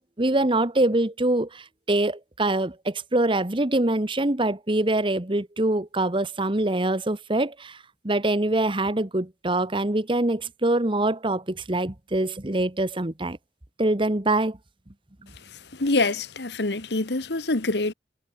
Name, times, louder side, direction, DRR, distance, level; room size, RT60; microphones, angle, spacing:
voice 1, 0.0-7.8 8.0-13.4 13.8-14.6, right 2 dB, 30° right, 1.4 m, -24 dB
voice 2, 15.8-17.9, left 2 dB, 70° left, 1.5 m, -25 dB
head